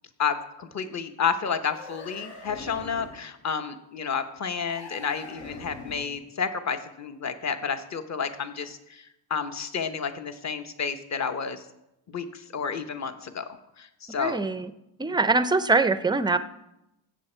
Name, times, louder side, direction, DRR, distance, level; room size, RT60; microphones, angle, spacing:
voice 1, 0.2-11.6 12.1-13.5 13.8-14.5, left 6 dB, 35° left, 9 dB, 1.0 m, -31 dB
sound 1, 1.6-3.2 4.6-6.2, left 3 dB, 75° left, 4.4 m, -43 dB
voice 2, 14.2-14.7 15.0-16.4, right 3 dB, 10° right, 12 dB, 0.4 m, -23 dB
15.0 x 8.2 x 4.4 m, 0.89 s
cardioid pair, 135°, 46 cm